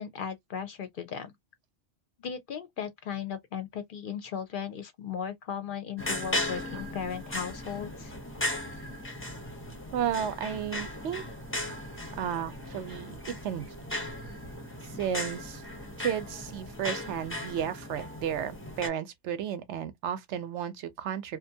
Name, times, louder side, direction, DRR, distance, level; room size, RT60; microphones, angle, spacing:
voice 1, 0.0-1.3 2.2-8.1, left 7 dB, 60° left, 0.6 m, -36 dB
sound 1, 6.0-18.9, left 1 dB, 15° left, 0.6 m, -37 dB
voice 2, 9.9-11.2 12.2-13.2 13.4-13.8 15.0-15.6 16.0-21.4, right 9 dB, 85° right, 0.9 m, -33 dB
2.6 x 2.2 x 2.6 m
omnidirectional pair, 1.2 m